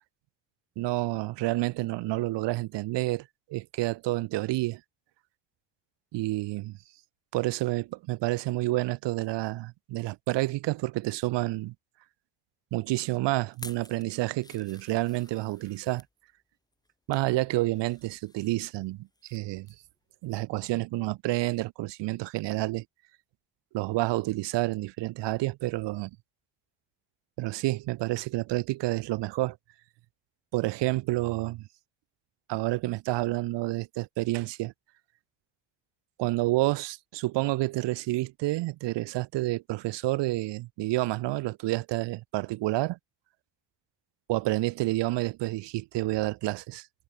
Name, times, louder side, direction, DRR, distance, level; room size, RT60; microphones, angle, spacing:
voice 1, 0.8-4.8 6.1-6.8 7.3-11.7 12.7-16.0 17.1-19.7 20.2-22.8 23.7-26.1 27.4-29.6 30.5-31.7 32.5-34.7 36.2-43.0 44.3-46.9, right 18 dB, 65° right, 1.2 m, -29 dB
sound 1, 13.5-16.1 16.7-17.3 17.7-19.4 19.7-19.9 20.3-20.4, left 2 dB, 10° left, 6.3 m, -51 dB
cardioid pair, 145°, 45 cm